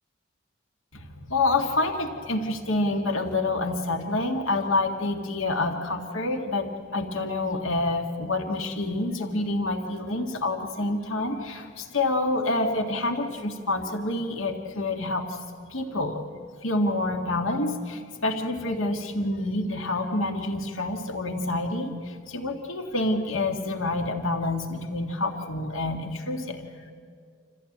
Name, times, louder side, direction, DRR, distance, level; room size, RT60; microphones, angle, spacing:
voice 1, 0.9-15.4 15.7-16.3 16.6-26.7, left 2 dB, 85° left, 4 dB, 1.9 m, -27 dB
27.0 x 15.0 x 8.7 m, 2.1 s
head